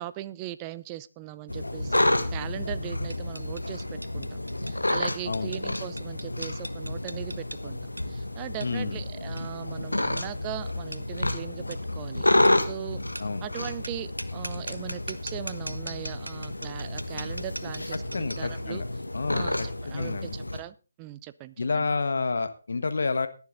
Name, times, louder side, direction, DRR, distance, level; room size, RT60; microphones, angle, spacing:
voice 1, 0.0-2.0 2.3-13.0 13.4-18.8 19.3-21.9, right 15 dB, 20° right, 15 dB, 0.5 m, -40 dB
sound 1, 1.5-20.6, left 1 dB, 80° left, 1.7 m, -30 dB
sound 2, 3.1-18.6, right 1 dB, 85° right, 1.0 m, -43 dB
voice 2, 8.6-9.0 13.2-13.4 18.1-18.8 19.1-20.3 21.6-23.3, left 4 dB, 60° left, 10 dB, 1.3 m, -29 dB
20.5 x 7.2 x 3.9 m, 0.34 s
figure-of-eight pair, 145°, 0 cm